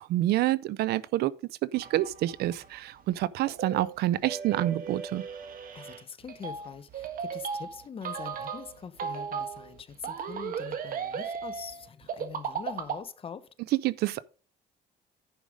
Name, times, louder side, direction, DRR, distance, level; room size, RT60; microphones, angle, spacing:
voice 1, 0.0-5.2 13.8-14.2, right 15 dB, 70° right, 0.5 m, -28 dB
sound 1, 1.7-13.0, right 6 dB, 55° right, 1.5 m, -36 dB
voice 2, 5.7-13.5, left 7 dB, 35° left, 0.8 m, -43 dB
10.5 x 5.0 x 5.0 m
cardioid pair, 110°, 17 cm